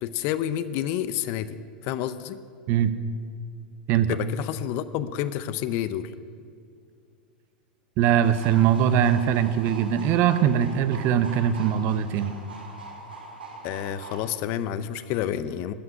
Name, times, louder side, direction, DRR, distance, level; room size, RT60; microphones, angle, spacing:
voice 1, 0.0-1.6 1.8-2.4 4.1-6.1 13.6-15.7, left 11 dB, 50° left, 13 dB, 0.6 m, -29 dB
voice 2, 8.0-12.4, right 9 dB, 45° right, 12 dB, 0.7 m, -21 dB
sound 1, 8.2-14.2, right 3 dB, 85° right, 1.9 m, -42 dB
12.5 x 5.9 x 9.4 m, 2.2 s
hypercardioid pair, 95°, 5 cm